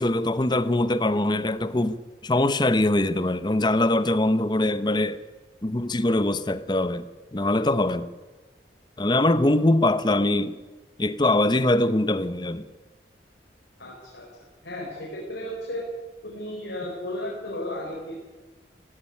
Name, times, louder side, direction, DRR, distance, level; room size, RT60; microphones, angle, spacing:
voice 1, 0.0-5.2 5.6-8.1 9.0-10.6 11.0-12.6, left 1 dB, 25° left, 0.8 m, -23 dB
voice 2, 13.8-14.3 14.6-15.9 16.2-18.2, left 1 dB, 85° left, 4.8 m, -34 dB
16.5 x 16.5 x 9.9 m
head